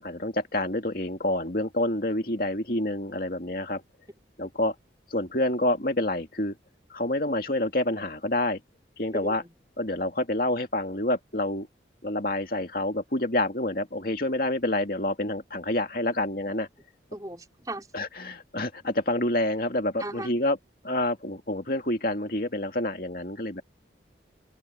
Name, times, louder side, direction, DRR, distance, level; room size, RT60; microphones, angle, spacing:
voice 1, 0.0-3.8 4.4-4.7 5.1-6.5 6.9-8.6 9.0-9.4 9.8-11.7 12.0-16.7 17.9-20.6 20.8-23.6, left 1 dB, 50° left, 2.4 m, -28 dB
voice 2, 9.1-9.5 17.1-17.9 20.0-20.3, right 1 dB, 20° right, 4.0 m, -37 dB
head